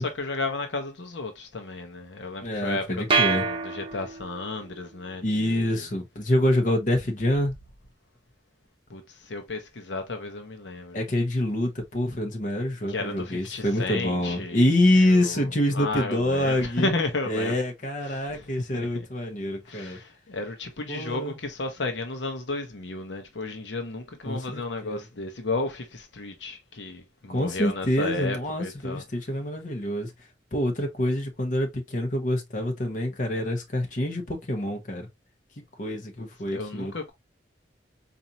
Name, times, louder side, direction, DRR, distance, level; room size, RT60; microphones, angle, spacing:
voice 1, 0.0-5.9 8.9-11.0 12.9-14.7 14.9-17.6 18.1-19.1 19.7-29.0 36.2-37.1, left 3 dB, 85° left, 0.8 m, -33 dB
voice 2, 2.4-3.4 5.2-7.6 10.9-16.9 17.3-20.0 20.9-21.4 24.2-25.0 27.3-30.1 30.5-35.1 35.8-36.9, left 1 dB, 45° left, 1.0 m, -26 dB
sound 1, 3.1-4.5, right 5 dB, 30° right, 0.8 m, -25 dB
4.2 x 2.6 x 2.7 m
head